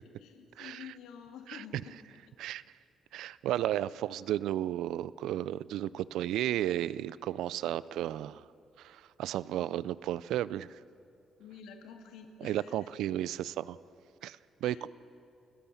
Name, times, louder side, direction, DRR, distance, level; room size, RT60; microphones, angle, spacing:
voice 1, 0.2-2.0 11.4-12.9 14.6-14.9, left 7 dB, 90° left, 5 dB, 2.2 m, -49 dB
voice 2, 3.1-8.5 8.8-10.8 12.4-13.8 14.2-14.9, right 12 dB, 85° right, 19 dB, 0.5 m, -33 dB
29.0 x 17.0 x 7.0 m, 2.5 s
cardioid pair, 90°, 0 cm